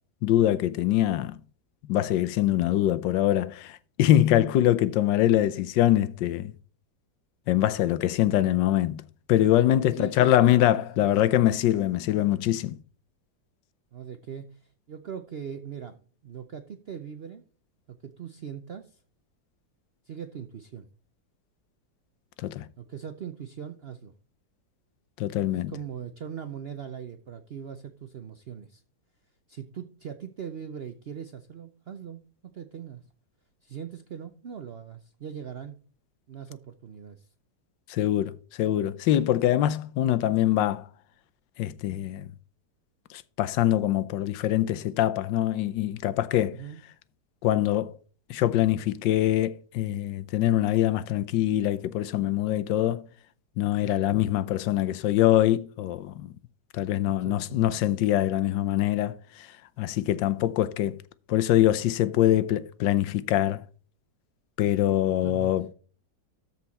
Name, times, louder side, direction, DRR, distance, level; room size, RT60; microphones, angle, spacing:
voice 1, 0.2-1.4 1.9-6.5 7.5-9.0 9.3-12.8 22.4-22.7 25.2-25.7 37.9-40.9 41.6-42.3 43.1-46.6 47.4-47.9 48.3-53.0 53.6-56.3 56.7-59.5 59.8-61.0 61.3-63.6 64.6-65.7, left 13 dB, 85° left, 1.3 m, -24 dB
voice 2, 9.9-11.1 13.9-17.4 17.9-19.0 20.0-20.9 22.8-24.1 25.5-28.8 29.5-33.0 33.6-35.8 36.3-37.3 46.5-46.8 53.8-54.0 57.0-57.7 65.2-65.5, right 8 dB, 70° right, 0.5 m, -40 dB
13.5 x 4.5 x 4.1 m
omnidirectional pair, 1.9 m